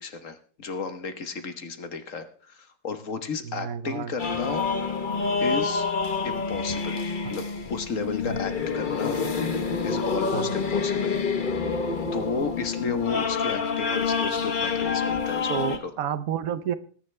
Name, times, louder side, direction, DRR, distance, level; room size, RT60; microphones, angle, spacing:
voice 1, 0.0-4.6 5.4-5.9 6.2-7.0 7.3-9.2 9.8-11.2 12.1-15.9, left 4 dB, 55° left, 9 dB, 1.5 m, -33 dB
voice 2, 3.4-4.2 7.2-7.3 8.2-8.4 10.3-10.5 15.5-16.7, right 9 dB, 65° right, 13 dB, 1.3 m, -30 dB
sound 1, 4.2-15.8, left 5 dB, 35° left, 1.1 m, -27 dB
21.0 x 10.0 x 3.3 m, 0.43 s
omnidirectional pair, 1.7 m